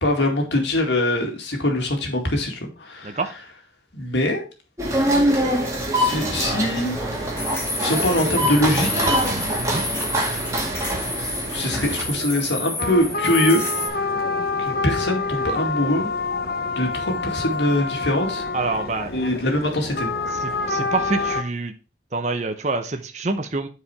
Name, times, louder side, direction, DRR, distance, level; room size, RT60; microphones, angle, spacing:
voice 1, 0.0-3.2 3.9-4.5 5.9-7.0 7.8-9.1 11.5-13.6 14.6-16.1 16.8-18.4 19.1-20.1, left 1 dB, 85° left, 2 dB, 2.2 m, -23 dB
sound 1, 4.8-12.0, equal, 15° right, 2.2 m, -24 dB
sound 2, 6.0-13.9, left 1 dB, 15° left, 2.3 m, -30 dB
sound 3, 12.8-21.4, left 3 dB, 55° left, 1.0 m, -27 dB
voice 2, 18.5-19.1 20.4-21.7 22.1-23.7, right 3 dB, 40° right, 7 dB, 0.7 m, -26 dB
8.6 x 4.8 x 4.7 m, 0.32 s
head